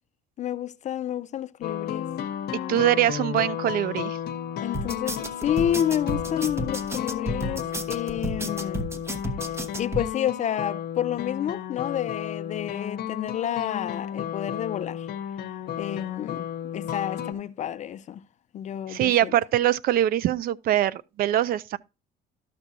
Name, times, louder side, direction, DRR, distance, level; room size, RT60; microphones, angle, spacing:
voice 1, 0.4-2.1 4.6-8.9 9.8-15.1 15.8-16.5 16.7-18.2 18.5-19.4, left 10 dB, 45° left, 0.4 m, -30 dB
sound 1, 1.6-17.3, left 9 dB, 70° left, 0.9 m, -33 dB
voice 2, 2.7-4.2 18.9-21.8, right 12 dB, 60° right, 0.5 m, -23 dB
sound 2, 4.7-10.1, right 1 dB, 15° right, 0.9 m, -32 dB
12.5 x 6.0 x 2.7 m
cardioid pair, 110°, 17 cm